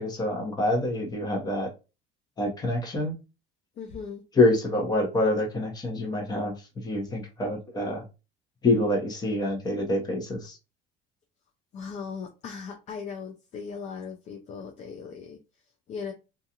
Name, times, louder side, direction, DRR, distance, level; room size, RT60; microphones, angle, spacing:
voice 1, 0.0-1.7 2.4-3.2 4.4-8.0 8.6-10.6, left 2 dB, 20° left, 0 dB, 0.9 m, -26 dB
voice 2, 3.8-4.2 11.7-15.4 15.9-16.1, left 6 dB, 40° left, 4 dB, 0.4 m, -38 dB
2.5 x 2.3 x 2.8 m, 0.29 s
cardioid pair, 145°, 19 cm